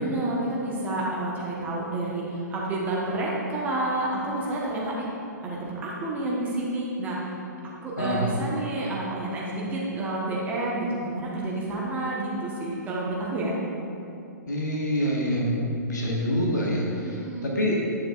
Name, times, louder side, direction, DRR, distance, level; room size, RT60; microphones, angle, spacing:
voice 1, 0.0-4.9 5.4-7.2 7.8-13.5 17.0-17.5, right 2 dB, 15° right, -5 dB, 1.2 m, -29 dB
voice 2, 8.0-8.4 14.5-15.6 15.8-17.8, equal, 70° left, -3 dB, 1.5 m, -26 dB
9.5 x 6.5 x 2.5 m, 2.7 s
figure-of-eight pair, 115°, 10 cm